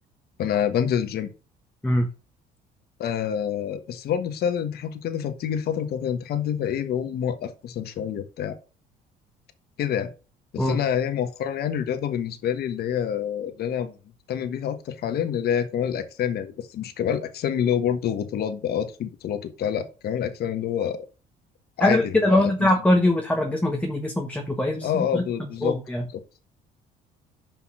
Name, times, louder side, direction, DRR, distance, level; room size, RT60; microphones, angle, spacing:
voice 1, 0.4-1.3 3.0-8.6 9.8-10.1 10.5-14.0 14.3-21.0 21.8-22.7 24.8-25.8, left 9 dB, 60° left, 8 dB, 1.5 m, -27 dB
voice 2, 21.8-26.0, left 1 dB, 5° left, 2 dB, 1.4 m, -22 dB
6.0 x 5.5 x 6.3 m, 0.32 s
cardioid pair, 100°, 18 cm